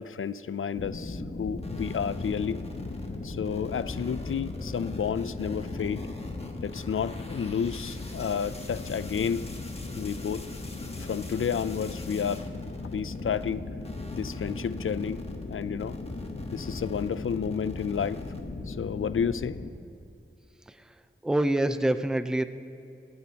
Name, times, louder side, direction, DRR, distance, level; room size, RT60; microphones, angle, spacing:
voice 1, 0.0-2.6 3.2-6.0 6.6-9.5 10.0-10.5 11.0-12.5 12.8-13.7 14.1-16.0 16.5-18.2 18.7-19.6, left 7 dB, 80° left, 15 dB, 0.4 m, -31 dB
sound 1, 0.7-19.7, left 2 dB, 50° left, 1.0 m, -38 dB
sound 2, 1.6-13.5 13.8-18.4, left 1 dB, 30° left, 1.4 m, -45 dB
voice 2, 21.2-22.4, right 1 dB, 5° right, 10 dB, 0.5 m, -25 dB
27.0 x 9.6 x 2.9 m, 2.7 s
wide cardioid pair, 70°, 21 cm